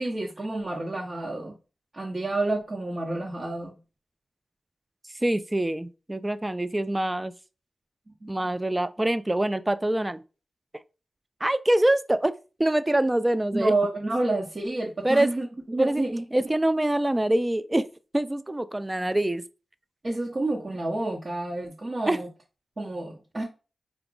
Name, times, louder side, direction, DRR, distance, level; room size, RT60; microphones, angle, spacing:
voice 1, 0.0-1.5 1.9-3.7 8.2-8.3 13.5-16.2 20.0-22.3 22.8-23.4, right 2 dB, 45° right, 1.0 m, -29 dB
voice 2, 5.2-7.3 8.3-10.2 11.4-12.3 12.6-13.7 15.0-15.3 15.8-16.0 16.3-17.9 18.1-19.4 22.1-22.2, right 1 dB, 20° right, 0.3 m, -24 dB
4.8 x 2.3 x 3.8 m
cardioid pair, 60°, 0 cm